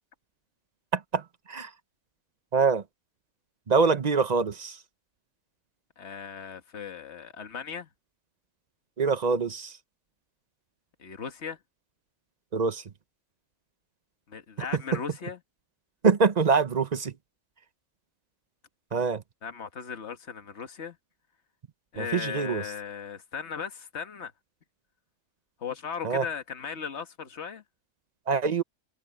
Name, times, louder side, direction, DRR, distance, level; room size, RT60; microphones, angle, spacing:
voice 1, 0.9-1.7 2.5-2.8 3.7-4.8 9.0-9.8 12.5-12.8 14.9-15.0 16.0-17.1 18.9-19.2 22.0-22.6 26.0-26.2 28.3-28.6, right 5 dB, 35° right, 0.7 m, -24 dB
voice 2, 6.0-7.9 11.0-11.6 14.3-15.4 19.4-21.0 21.9-24.3 25.6-27.6, left 7 dB, 50° left, 1.8 m, -37 dB
omnidirectional pair, 1.6 m